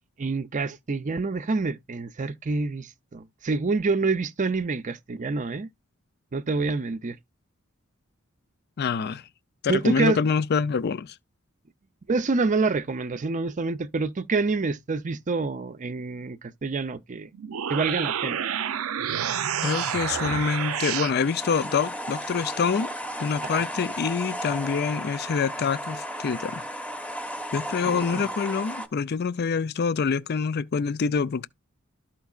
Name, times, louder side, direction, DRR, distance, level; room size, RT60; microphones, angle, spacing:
voice 1, 0.2-5.7 6.3-7.2 9.7-10.2 12.1-17.3 17.7-18.4 23.4-23.6 27.8-28.3, right 3 dB, 35° right, 0.5 m, -27 dB
voice 2, 8.8-9.2 9.6-11.1 19.6-22.9 23.2-26.6 27.5-31.5, left 5 dB, 50° left, 0.4 m, -26 dB
sound 1, 17.3-21.2, right 9 dB, 85° right, 0.5 m, -29 dB
sound 2, 19.6-28.9, equal, 5° left, 0.9 m, -35 dB
13.0 x 4.5 x 2.4 m
head